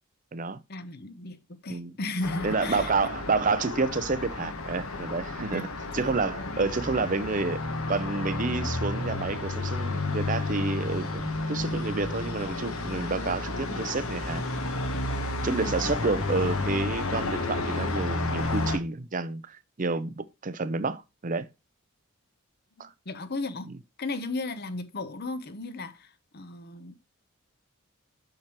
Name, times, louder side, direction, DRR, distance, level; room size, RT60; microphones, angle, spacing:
voice 1, 0.7-2.9 5.5-6.1 6.4-6.7 15.6-15.8 22.8-23.7 24.0-27.0, left 2 dB, 45° left, 0.8 m, -35 dB
Traffic noise roadway noise, 2.2-18.8, left 2 dB, 75° left, 1.3 m, -31 dB
voice 2, 2.4-5.7 5.9-7.6 7.9-14.4 15.4-21.5 22.8-22.9 23.7-23.8, right 3 dB, 35° right, 0.6 m, -29 dB
7.3 x 6.4 x 3.0 m
head